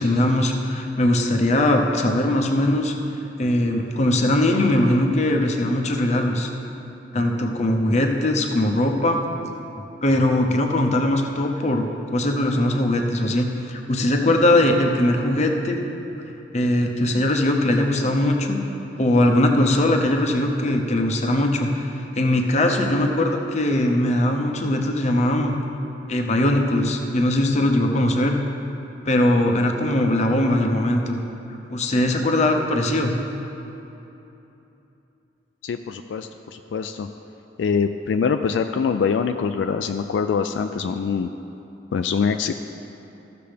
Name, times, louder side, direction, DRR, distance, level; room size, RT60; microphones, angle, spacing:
voice 1, 0.0-2.9 3.4-6.5 7.1-9.2 10.0-15.8 16.5-18.6 19.0-21.9 22.1-25.5 26.1-28.4 29.1-31.2 31.7-33.1, left 1 dB, 40° left, 2 dB, 0.8 m, -20 dB
voice 2, 35.6-37.1 37.6-41.3 41.9-42.5, left 6 dB, 75° left, 7 dB, 0.3 m, -24 dB
15.0 x 6.8 x 3.4 m, 3.0 s
head